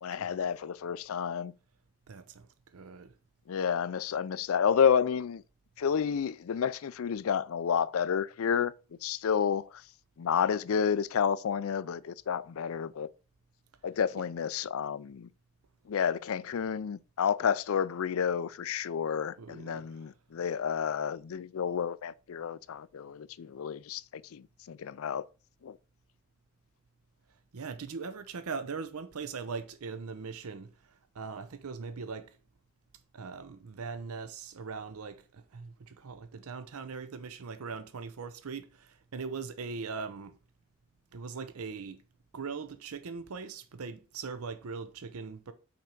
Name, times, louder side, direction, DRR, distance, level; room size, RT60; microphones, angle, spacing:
voice 1, 0.0-1.5 3.5-5.4 5.8-8.7 9.0-9.8 10.2-13.1 13.8-15.3 15.9-25.2 25.6-25.8, left 7 dB, 70° left, 0.4 m, -30 dB
voice 2, 2.1-3.1 19.4-20.1 27.5-32.4 33.1-40.4 41.1-42.0 42.3-45.5, right 5 dB, 80° right, 0.6 m, -40 dB
5.9 x 4.4 x 5.3 m
head